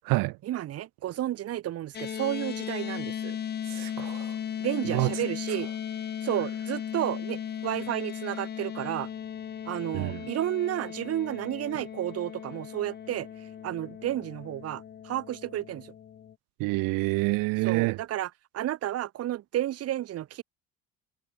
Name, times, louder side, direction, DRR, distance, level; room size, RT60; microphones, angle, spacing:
voice 1, 0.4-3.4 4.6-5.7 6.2-9.1 9.7-13.3 13.6-15.9 17.6-20.4, right 13 dB, 45° right, 1.3 m, -32 dB
sound 1, 1.9-16.3, left 9 dB, 30° left, 1.0 m, -37 dB
voice 2, 3.7-4.4 4.8-5.1 9.9-10.3 16.6-18.0, right 24 dB, 85° right, 1.3 m, -27 dB
cardioid pair, 145°, 33 cm